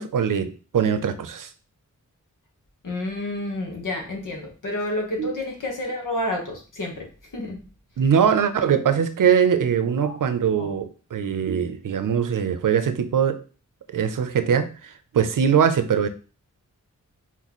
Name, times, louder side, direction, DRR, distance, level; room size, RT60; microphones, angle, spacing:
voice 1, 0.0-1.5 5.2-5.4 8.0-13.4 13.9-16.1, right 7 dB, 90° right, 0.6 m, -22 dB
voice 2, 2.8-7.6 10.0-10.2 10.6-10.7, left 1 dB, 80° left, 1.4 m, -30 dB
4.3 x 3.1 x 4.1 m
wide cardioid pair, 120°, 31 cm